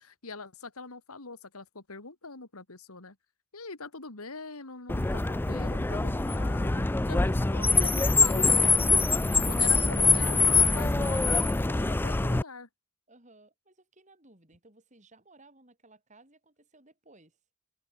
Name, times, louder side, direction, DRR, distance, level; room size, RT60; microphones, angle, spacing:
voice 1, 0.0-3.2 3.5-8.4 9.5-12.7, left 3 dB, 90° left, 2.5 m, -43 dB
Car, 4.9-12.4, left 3 dB, 10° left, 0.3 m, -24 dB
voice 2, 13.1-17.4, right 2 dB, 35° right, 4.9 m, -58 dB
open air
head